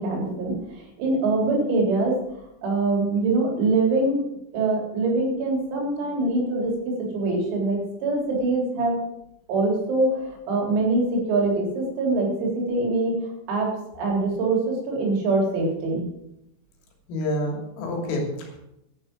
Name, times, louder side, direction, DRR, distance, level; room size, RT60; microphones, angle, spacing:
voice 1, 0.0-2.1 2.6-4.2 4.5-6.7 7.1-9.0 9.5-13.1 13.5-16.1, right 2 dB, 85° right, -1 dB, 6.4 m, -24 dB
voice 2, 17.1-18.6, left 1 dB, 75° left, 1 dB, 5.2 m, -28 dB
11.5 x 10.5 x 6.2 m, 0.84 s
omnidirectional pair, 6.0 m